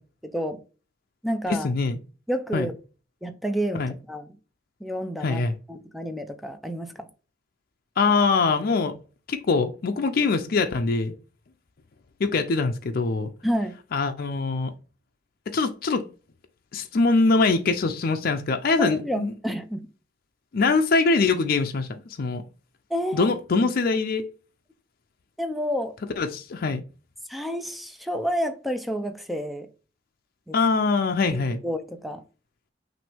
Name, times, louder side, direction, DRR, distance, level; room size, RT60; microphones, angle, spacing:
voice 1, 0.2-0.6 1.2-1.7 2.3-2.7 3.2-4.3 4.8-5.4 5.7-7.1 13.4-13.7 18.8-19.8 22.9-23.3 25.4-25.9 27.3-29.7 30.5-30.6 31.6-32.2, equal, ahead, 0.4 m, -29 dB
voice 2, 1.5-2.0 2.5-2.7 3.7-3.9 5.2-5.6 8.0-8.9 9.3-11.1 12.2-13.3 13.9-14.7 15.5-16.1 16.7-19.3 20.5-22.4 23.1-24.3 26.2-26.8 30.5-31.6, left 3 dB, 55° left, 0.5 m, -23 dB
6.0 x 2.6 x 3.4 m
head